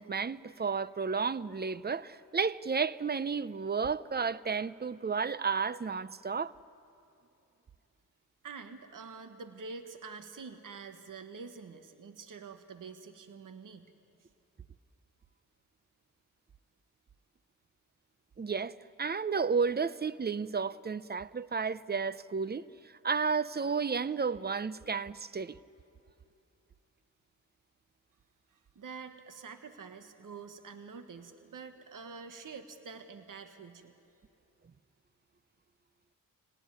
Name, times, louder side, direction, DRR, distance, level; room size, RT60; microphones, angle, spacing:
voice 1, 0.0-6.5 18.4-22.6 23.0-25.6, right 5 dB, 30° right, 0.6 m, -32 dB
voice 2, 8.4-13.9 28.5-33.9, right 5 dB, 60° right, 1.5 m, -47 dB
26.0 x 18.0 x 9.7 m
cardioid pair, 60°, 35 cm